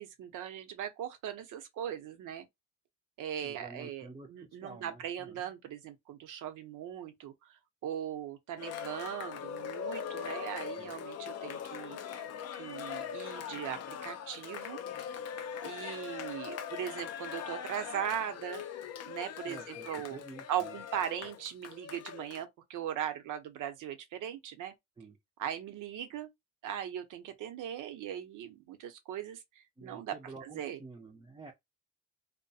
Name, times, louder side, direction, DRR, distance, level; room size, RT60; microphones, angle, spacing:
voice 1, 0.0-2.5 3.2-12.2 12.6-14.8 15.6-18.6 19.1-20.2 20.5-24.7 25.4-26.3 26.6-30.8, right 10 dB, 80° right, 0.7 m, -39 dB
voice 2, 3.4-5.5 10.8-10.9 19.4-20.8 25.0-25.2 29.8-31.5, right 3 dB, 15° right, 0.4 m, -49 dB
Cheering, 8.6-22.4, left 8 dB, 55° left, 0.4 m, -41 dB
2.3 x 2.1 x 2.6 m
cardioid pair, 125°, 30 cm